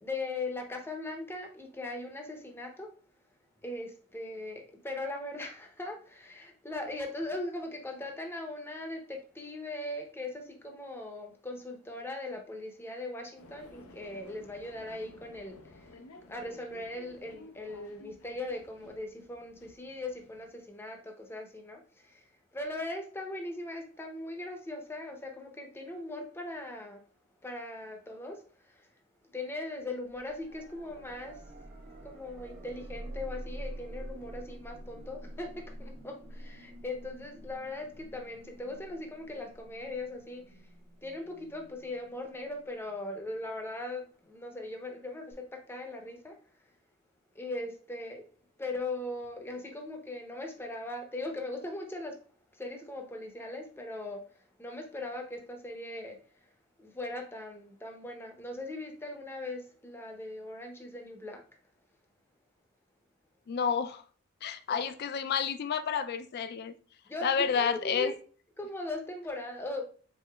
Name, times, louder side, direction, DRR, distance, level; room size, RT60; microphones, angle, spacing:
voice 1, 0.0-2.9 3.6-15.9 16.3-22.2 22.5-27.0 27.4-28.9 29.3-31.4 32.0-40.6 41.0-46.3 47.3-48.2 48.6-52.1 52.5-56.2 56.8-61.4 64.7-64.9 67.1-68.2 68.6-69.8, left 2 dB, 10° left, 0.6 m, -39 dB
sound 1, 13.4-20.7, left 2 dB, 85° left, 0.6 m, -54 dB
sound 2, 30.1-43.0 45.3-45.4, right 1 dB, 45° right, 1.0 m, -47 dB
voice 2, 63.5-64.0 64.4-66.7 67.2-68.1, left 6 dB, 45° left, 0.3 m, -30 dB
4.8 x 3.9 x 2.3 m
head